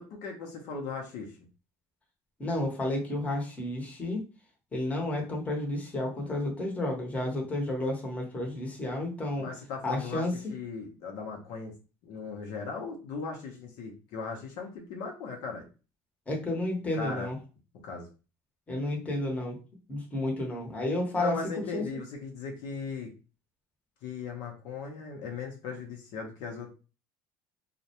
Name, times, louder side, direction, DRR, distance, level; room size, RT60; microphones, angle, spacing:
voice 1, 0.0-1.4 9.4-10.2 10.5-11.7 12.0-15.7 16.9-17.3 17.8-18.1 21.1-23.1 24.0-26.7, left 5 dB, 70° left, 0 dB, 0.7 m, -38 dB
voice 2, 2.4-4.2 4.7-9.5 9.8-10.3 16.3-17.4 18.7-19.6 19.9-21.8, left 1 dB, 20° left, 0 dB, 0.9 m, -31 dB
2.3 x 2.1 x 2.9 m, 0.33 s
supercardioid pair, 100°, 8 cm